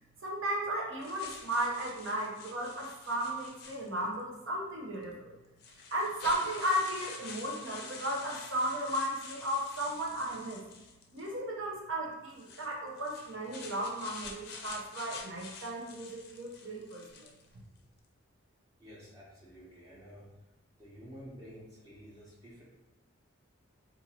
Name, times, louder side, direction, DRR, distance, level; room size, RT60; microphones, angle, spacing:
voice 1, 0.2-5.3 5.9-10.6 11.1-17.3, right 1 dB, 65° right, -2 dB, 0.8 m, -35 dB
sound 1, 1.0-4.2 5.0-5.1 5.6-11.4 12.3-17.5, left 4 dB, 50° left, 0.5 m, -48 dB
voice 2, 18.8-20.2 20.8-22.6, equal, 15° right, -7 dB, 0.8 m, -51 dB
2.6 x 2.6 x 4.3 m, 0.99 s
head